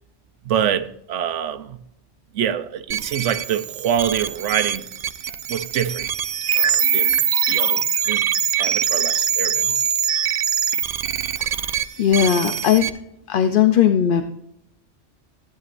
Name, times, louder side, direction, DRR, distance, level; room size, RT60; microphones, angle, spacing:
voice 1, 0.4-1.8 2.3-4.9 5.5-6.0 6.5-7.2 7.5-8.2 8.6-9.8, right 9 dB, 85° right, 1.0 m, -25 dB
sound 1, 2.9-12.9, right 8 dB, 60° right, 0.4 m, -23 dB
voice 2, 12.0-12.9 13.3-14.2, left 9 dB, 55° left, 0.7 m, -17 dB
15.0 x 9.7 x 2.5 m
omnidirectional pair, 1.2 m